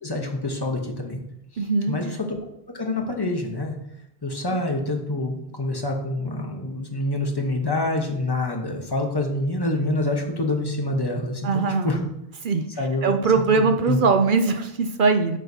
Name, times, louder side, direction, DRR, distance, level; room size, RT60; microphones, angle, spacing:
voice 1, 0.0-1.2 1.5-2.4 2.7-3.8 4.2-12.1 12.8-13.1 13.6-14.0, left 2 dB, 25° left, 2 dB, 1.1 m, -26 dB
voice 2, 1.6-2.0 11.4-12.1 12.4-12.6 13.0-15.4, right 4 dB, 60° right, 7 dB, 0.7 m, -21 dB
9.1 x 6.3 x 2.8 m, 0.79 s
omnidirectional pair, 1.0 m